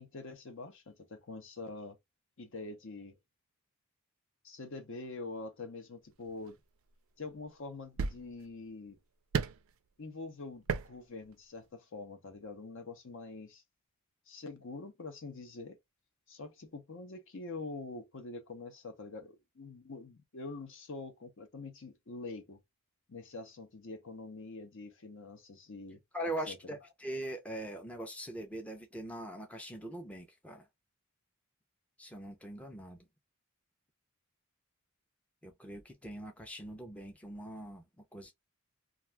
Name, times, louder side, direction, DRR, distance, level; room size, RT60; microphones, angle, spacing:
voice 1, 0.0-2.0 2.4-3.2 4.4-6.6 7.2-9.0 10.0-13.6 14.3-15.8 16.3-22.6 23.1-26.0 26.5-26.6, left 3 dB, 60° left, 0.7 m, -45 dB
sound 1, 6.3-6.5 7.4-7.5 8.0-8.6 9.3-9.7 10.6-11.0 11.2-11.3, right 5 dB, 65° right, 0.4 m, -33 dB
voice 2, 26.1-30.7 32.0-33.0 35.4-38.3, right 1 dB, 5° left, 0.5 m, -42 dB
2.4 x 2.3 x 3.2 m
head